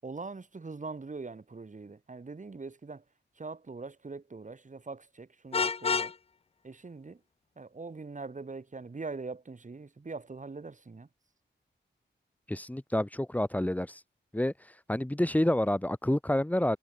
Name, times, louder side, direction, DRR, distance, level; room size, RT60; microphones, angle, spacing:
voice 1, 0.0-3.0 3.4-6.1 6.6-7.2 7.6-11.1, right 3 dB, 40° right, 7.0 m, -42 dB
Vehicle horn car horn honking, 5.5-6.2, left 5 dB, 30° left, 0.4 m, -28 dB
voice 2, 12.5-14.0 14.3-14.5 14.9-16.8, left 1 dB, 10° left, 1.2 m, -28 dB
wide cardioid pair, 105°, 20 cm